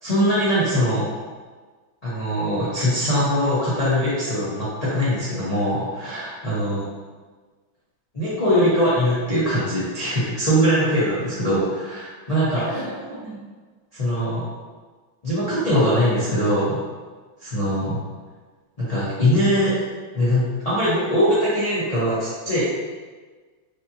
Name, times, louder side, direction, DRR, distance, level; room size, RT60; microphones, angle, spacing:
voice 1, 0.0-1.1 2.0-6.8 8.1-12.6 13.9-14.5 15.2-16.8 17.4-17.9 18.8-19.8 20.1-22.6, equal, 50° left, -11 dB, 0.4 m, -21 dB
voice 2, 11.3-11.6 12.5-13.4 17.6-17.8, right 2 dB, 65° right, -8 dB, 1.7 m, -38 dB
4.8 x 2.8 x 2.7 m, 1.4 s
omnidirectional pair, 2.3 m